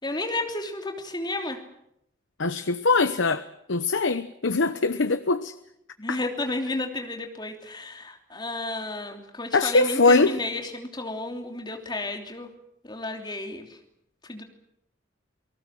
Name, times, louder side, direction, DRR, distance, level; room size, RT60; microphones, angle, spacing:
voice 1, 0.0-1.6 6.0-12.5 12.8-13.7 14.3-14.4, left 2 dB, 25° left, 3.1 m, -32 dB
voice 2, 2.4-5.5 6.1-6.2 9.5-10.4, left 3 dB, 90° left, 0.9 m, -22 dB
29.0 x 19.0 x 7.6 m
head